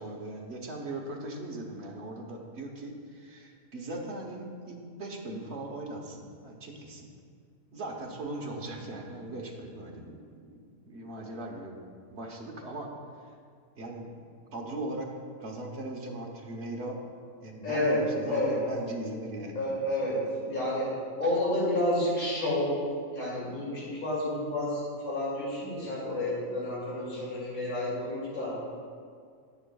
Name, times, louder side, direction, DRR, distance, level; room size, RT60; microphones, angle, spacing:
voice 1, 0.0-7.1 7.7-10.2 10.5-10.6 10.9-11.7 12.1-12.9 13.8-14.1 14.5-15.1 15.4-17.0 17.4-19.6, right 2 dB, 50° right, 0 dB, 1.3 m, -39 dB
voice 2, 17.6-18.6 19.5-28.6, left 1 dB, 85° left, -7 dB, 3.0 m, -30 dB
11.5 x 9.7 x 2.3 m, 2.2 s
omnidirectional pair, 1.4 m